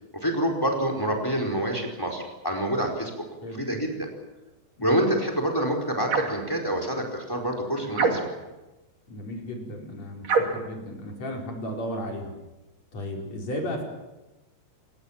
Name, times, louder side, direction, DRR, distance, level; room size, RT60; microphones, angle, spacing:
voice 1, 0.1-3.1 3.5-4.1 4.8-8.2, right 1 dB, 5° left, 3 dB, 4.2 m, -27 dB
sound 1, 6.1-6.5 7.9-8.5 10.2-10.7, right 4 dB, 40° right, 3.0 m, -25 dB
voice 2, 9.1-12.3 12.9-13.8, equal, 35° left, 1 dB, 5.4 m, -34 dB
27.0 x 21.0 x 7.5 m, 1.0 s
omnidirectional pair, 5.2 m